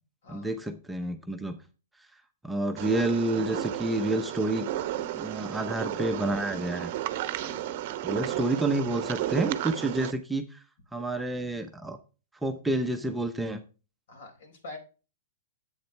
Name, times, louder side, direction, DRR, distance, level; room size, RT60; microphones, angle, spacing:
voice 1, 0.3-1.6 2.4-4.7 5.1-6.9 8.0-10.6 10.9-12.0 12.4-13.6, right 2 dB, 5° right, 5 dB, 0.8 m, -29 dB
sound 1, 2.8-10.1, right 12 dB, 50° right, 0.8 m, -33 dB
voice 2, 7.4-7.7 8.2-8.4 14.1-14.8, left 2 dB, 65° left, 2 dB, 4.4 m, -45 dB
8.1 x 7.7 x 3.3 m, 0.33 s
hypercardioid pair, 125°, 0 cm